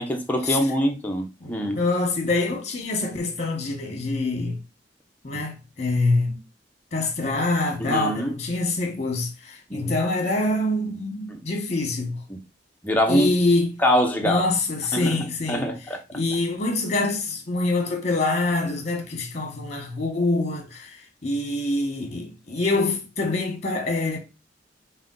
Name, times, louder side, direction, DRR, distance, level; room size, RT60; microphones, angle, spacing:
voice 1, 0.0-1.8 5.3-5.4 7.8-8.3 9.7-9.9 11.3-11.4 12.3-12.4 12.8-13.3 13.8-14.5 14.9-16.0, equal, 10° left, 0.8 m, -24 dB
voice 2, 1.4-4.6 5.2-6.4 6.9-12.2 13.1-13.8 14.2-15.7 16.1-24.2, left 2 dB, 40° left, 1.2 m, -25 dB
4.9 x 2.2 x 3.8 m
head